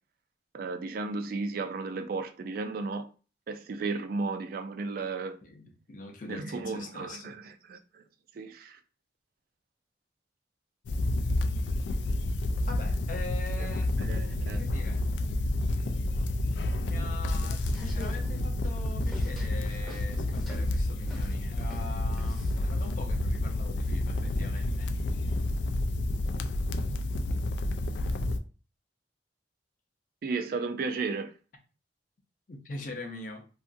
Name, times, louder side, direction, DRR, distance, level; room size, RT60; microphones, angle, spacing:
voice 1, 0.5-3.1 3.5-5.4 6.3-8.0 8.3-8.8 13.6-13.7 14.0-14.6 30.2-31.3, right 4 dB, 55° right, 0.3 m, -34 dB
voice 2, 5.4-7.4 12.7-14.0 14.6-15.0 16.8-24.9 32.5-33.4, left 2 dB, 50° left, 0.6 m, -43 dB
sound 1, 10.9-28.4, left 1 dB, 90° left, 0.3 m, -29 dB
sound 2, 17.4-22.7, equal, ahead, 0.6 m, -46 dB
2.7 x 2.4 x 2.5 m
head